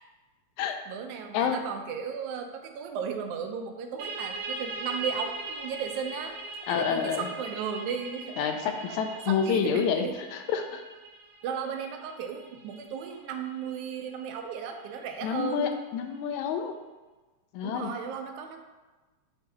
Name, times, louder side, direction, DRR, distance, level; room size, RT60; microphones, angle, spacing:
voice 1, 0.9-6.4 6.7-10.1 11.4-15.7 17.6-18.6, right 7 dB, 85° right, 5 dB, 2.1 m, -35 dB
sound 1, 4.0-15.4, right 3 dB, 70° right, 1.7 m, -40 dB
voice 2, 6.7-7.3 8.4-10.8 15.2-16.8 17.5-17.9, left 7 dB, 85° left, 6 dB, 1.9 m, -28 dB
6.7 x 2.8 x 5.2 m, 1.2 s
omnidirectional pair, 3.3 m